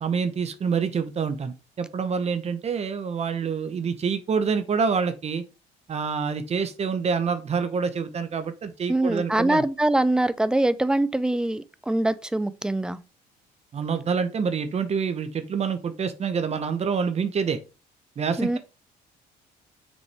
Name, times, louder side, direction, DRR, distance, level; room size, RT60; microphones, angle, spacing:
voice 1, 0.0-5.4 5.9-9.6 13.7-17.6 18.2-18.6, right 6 dB, 40° right, 0.9 m, -27 dB
voice 2, 8.9-13.0 18.4-18.6, right 1 dB, 5° right, 0.5 m, -23 dB
6.4 x 5.3 x 3.5 m
cardioid pair, 110°, 17 cm